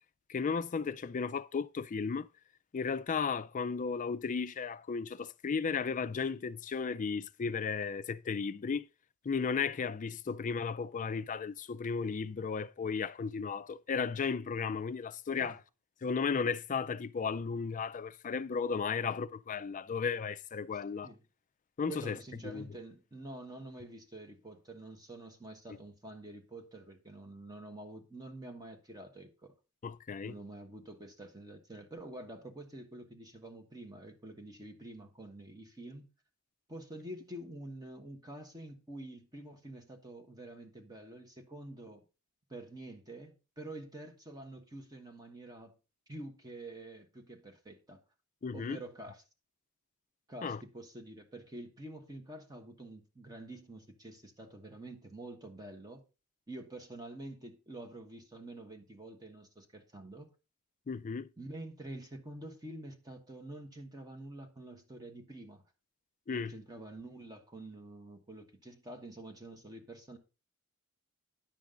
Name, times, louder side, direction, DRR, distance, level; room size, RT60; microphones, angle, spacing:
voice 1, 0.3-2.3 2.7-8.8 9.2-15.6 16.0-21.1 21.8-22.2 22.4-22.6 29.8-30.4 48.4-48.8 50.4-50.6 60.9-61.3 66.3-66.5, left 5 dB, 35° left, 0.4 m, -34 dB
voice 2, 21.9-29.5 30.2-36.1 36.7-42.0 42.5-45.7 46.1-48.0 48.5-49.2 50.3-56.0 56.5-60.3 61.4-65.6 66.3-70.2, right 1 dB, 20° right, 1.3 m, -47 dB
10.0 x 7.3 x 3.8 m
head